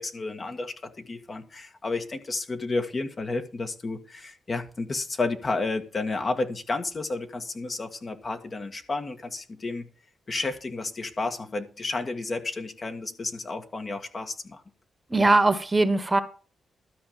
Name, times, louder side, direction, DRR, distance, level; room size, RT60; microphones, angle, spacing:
voice 1, 0.0-9.9 10.3-14.6, left 3 dB, 40° left, 6 dB, 1.8 m, -31 dB
voice 2, 15.1-16.2, right 2 dB, 25° right, 11 dB, 1.3 m, -20 dB
12.5 x 5.1 x 7.3 m, 0.37 s
cardioid pair, 60°, 0 cm